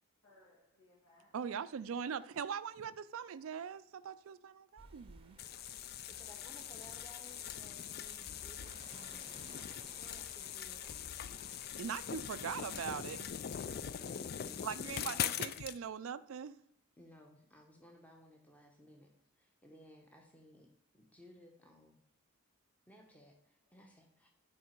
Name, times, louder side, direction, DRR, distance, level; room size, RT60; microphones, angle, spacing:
voice 1, 0.2-1.7 2.1-2.2 4.2-4.3 8.0-8.1 17.6-17.7 23.6-23.8, left 1 dB, 75° left, 2.4 m, -67 dB
voice 2, 1.3-5.4 11.8-13.3 14.6-16.6, right 7 dB, 70° right, 0.4 m, -41 dB
sound 1, 4.8-13.4, right 3 dB, 25° right, 0.7 m, -59 dB
sound 2, 5.4-15.8, left 9 dB, 45° left, 0.3 m, -42 dB
voice 3, 6.1-9.3 10.0-11.2 13.7-15.5 17.0-19.1 19.4-20.7 20.9-22.0 22.9-24.3, equal, 5° left, 0.9 m, -59 dB
11.0 x 4.9 x 4.4 m
head